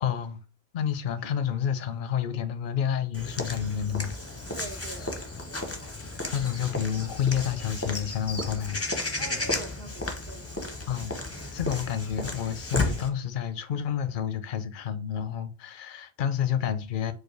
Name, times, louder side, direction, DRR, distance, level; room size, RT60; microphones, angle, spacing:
voice 1, 0.0-0.4 0.7-4.1 6.3-8.8 10.9-11.1 11.5-17.1, left 9 dB, 60° left, 0.6 m, -29 dB
Walk footsteps / Bird vocalization bird call bird song, 3.1-13.1, left 2 dB, 15° left, 0.6 m, -33 dB
voice 2, 4.5-5.2 9.2-10.5, right 2 dB, 60° right, 1.1 m, -43 dB
4.8 x 2.4 x 4.6 m
omnidirectional pair, 1.1 m